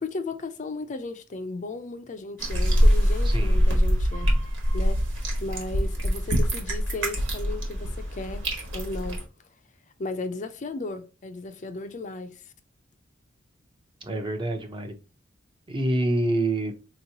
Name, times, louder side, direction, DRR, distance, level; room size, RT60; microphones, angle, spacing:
voice 1, 0.0-4.3 4.7-8.5 8.7-9.2 10.0-12.4, left 2 dB, 40° left, 0.4 m, -35 dB
sound 1, 2.4-9.2, equal, 85° right, 1.5 m, -24 dB
voice 2, 14.0-14.9 15.7-16.7, right 1 dB, 25° right, 0.7 m, -26 dB
4.3 x 3.0 x 2.7 m
head